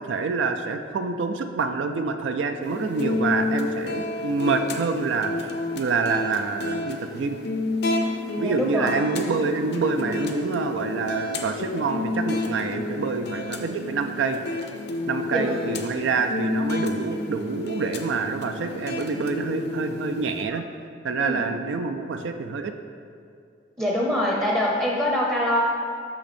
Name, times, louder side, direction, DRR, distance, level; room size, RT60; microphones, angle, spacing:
voice 1, 0.0-5.3 5.7-7.4 8.4-14.4 15.1-20.6 21.0-22.7, right 4 dB, 70° right, 7 dB, 0.4 m, -26 dB
sound 1, 2.6-20.4, left 2 dB, 60° left, 0.6 m, -30 dB
voice 2, 8.4-8.9 15.3-15.6 21.2-21.5 23.8-25.6, left 1 dB, 10° right, -3 dB, 0.7 m, -24 dB
6.1 x 5.8 x 4.3 m, 2.4 s
head